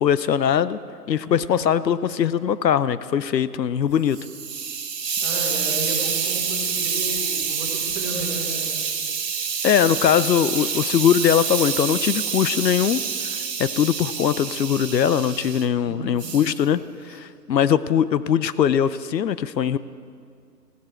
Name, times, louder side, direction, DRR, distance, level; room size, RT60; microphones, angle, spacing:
voice 1, 0.0-0.8 1.1-4.2 9.6-16.8 17.1-19.8, left 9 dB, 85° left, 16 dB, 0.7 m, -21 dB
voice 2, 1.2-1.5 5.2-8.8 15.8-16.2, right 2 dB, 10° right, -2 dB, 1.1 m, -33 dB
Hiss, 3.9-15.7 16.2-16.6, right 6 dB, 80° right, 1.5 m, -27 dB
16.0 x 14.5 x 4.4 m, 2.2 s
hypercardioid pair, 165°, 49 cm